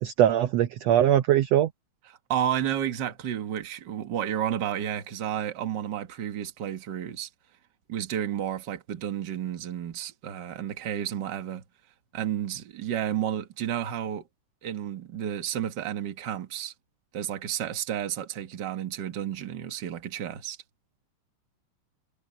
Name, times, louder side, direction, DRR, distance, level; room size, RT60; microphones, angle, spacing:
voice 1, 0.0-1.7, right 11 dB, 75° right, 1.5 m, -21 dB
voice 2, 2.3-7.3 7.9-11.6 12.1-14.2 14.6-16.7 17.1-20.6, right 10 dB, 50° right, 1.4 m, -31 dB
omnidirectional pair, 3.8 m